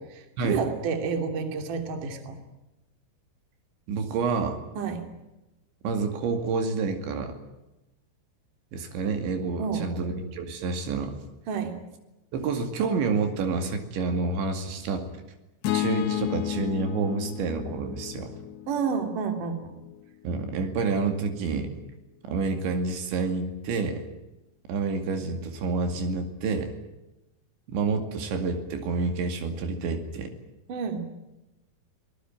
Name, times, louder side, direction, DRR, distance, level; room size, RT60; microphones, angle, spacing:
voice 1, 0.0-2.4 4.8-5.1 9.6-10.0 11.5-11.8 18.7-19.7 30.7-31.1, right 6 dB, 50° right, 6 dB, 4.0 m, -30 dB
voice 2, 3.9-4.6 5.8-7.4 8.7-11.2 12.3-15.1 15.7-18.3 20.2-21.7 22.3-24.1 24.7-26.7 27.7-30.3, right 4 dB, 80° right, 6 dB, 4.7 m, -28 dB
sound 1, 15.6-19.9, left 14 dB, 70° left, 3.5 m, -32 dB
26.0 x 19.5 x 9.1 m, 0.98 s
omnidirectional pair, 5.3 m